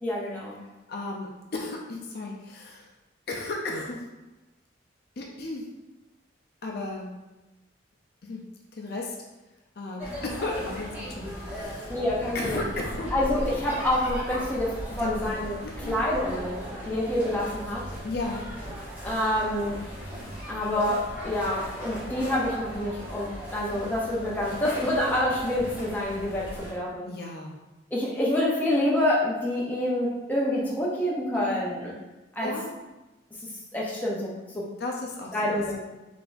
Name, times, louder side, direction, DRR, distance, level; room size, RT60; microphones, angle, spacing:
voice 1, 0.0-0.6 11.9-12.6 13.1-15.6 15.9-17.8 19.0-19.8 20.5-27.1 27.9-31.9 32.4-32.5 33.7-34.7 35.3-35.8, left 1 dB, 10° left, -6 dB, 0.6 m, -27 dB
voice 2, 0.9-2.9 3.3-4.1 5.2-5.7 6.6-7.2 8.2-8.5 8.7-9.2 9.8-12.0 12.3-13.2 15.0-15.3 15.6-16.1 18.0-18.5 24.8-24.9 27.1-27.5 31.3-31.5 32.4-32.7 34.8-35.8, left 2 dB, 55° left, -1 dB, 0.5 m, -34 dB
sound 1, 10.0-26.7, equal, 10° right, 1.0 m, -37 dB
3.9 x 3.3 x 2.5 m, 1.1 s
head